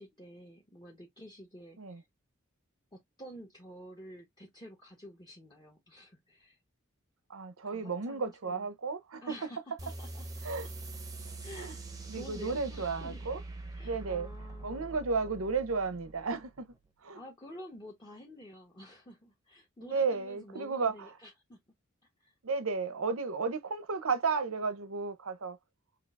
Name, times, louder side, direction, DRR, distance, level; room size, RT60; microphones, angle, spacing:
voice 1, 0.0-2.1 2.9-6.6 7.7-8.7 9.2-10.3 11.4-11.8 12.1-13.3 13.8-15.0 17.1-21.6 22.2-22.3, equal, 20° left, 1.0 m, -50 dB
voice 2, 7.3-9.4 10.4-10.7 11.6-11.7 12.1-13.4 13.8-14.3 14.6-16.7 17.0-17.2 19.8-21.1 22.4-25.6, right 4 dB, 80° right, 0.8 m, -33 dB
sound 1, 9.8-16.9, right 2 dB, 20° right, 0.8 m, -44 dB
6.1 x 2.6 x 2.5 m
head